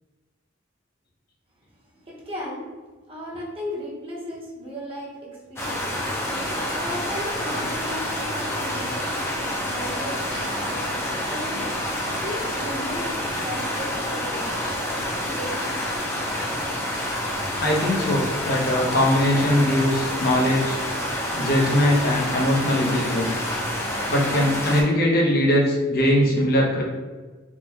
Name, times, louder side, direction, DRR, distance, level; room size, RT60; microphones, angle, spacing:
voice 1, 1.9-2.7 3.1-5.9 6.5-9.3 9.6-11.6 12.2-13.1 13.4-14.7 15.1-15.7, equal, 30° right, -5 dB, 0.9 m, -36 dB
sound 1, 5.6-24.8, left 1 dB, 15° left, 0.6 m, -28 dB
voice 2, 17.6-20.8 21.4-23.4 24.1-26.8, left 1 dB, 55° left, -2 dB, 0.7 m, -21 dB
3.7 x 2.1 x 2.8 m, 1.3 s
head